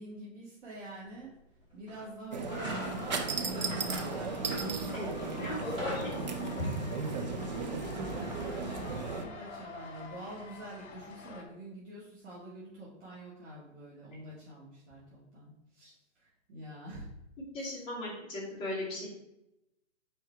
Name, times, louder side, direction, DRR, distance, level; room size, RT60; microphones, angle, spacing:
voice 1, 0.0-1.3 1.7-4.7 5.3-6.7 7.8-17.1 17.6-17.7, right 1 dB, 60° right, -8 dB, 2.1 m, -46 dB
sound 1, 1.1-1.2 1.9-2.1 2.4-5.2 5.5-7.2, equal, 15° right, 1.4 m, -42 dB
sound 2, 2.3-9.2, right 4 dB, 35° right, 0.5 m, -36 dB
sound 3, 2.5-11.4, left 4 dB, 60° left, 1.4 m, -47 dB
voice 2, 4.8-6.1 6.4-6.7 17.5-19.1, left 1 dB, 15° left, -9 dB, 2.3 m, -37 dB
4.7 x 4.5 x 4.5 m, 0.86 s
hypercardioid pair, 155°, 38 cm